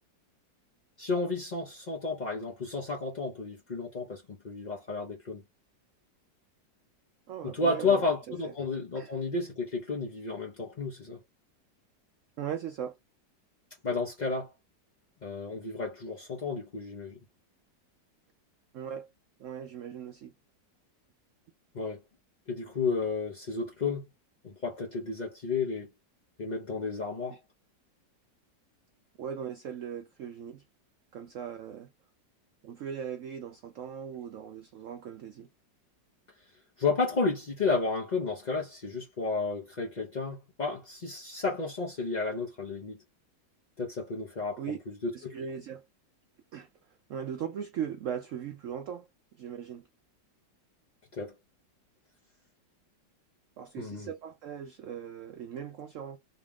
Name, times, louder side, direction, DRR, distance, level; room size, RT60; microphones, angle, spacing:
voice 1, 1.0-5.4 7.4-11.2 13.8-14.5 15.2-17.2 21.7-22.0 22.5-24.0 24.4-25.9 26.4-27.4 36.8-43.0 43.8-45.4 51.1-51.3 53.8-54.1, left 4 dB, 45° left, 0.6 m, -32 dB
voice 2, 7.3-8.0 8.4-8.5 9.0-9.1 12.4-13.0 18.7-19.1 19.4-20.3 27.3-27.4 29.2-30.6 31.1-31.9 32.6-35.5 44.6-44.8 45.1-45.8 46.5-46.7 47.1-49.1 49.4-49.9 53.6-56.2, right 8 dB, 90° right, 0.6 m, -39 dB
4.0 x 2.3 x 3.5 m
omnidirectional pair, 1.9 m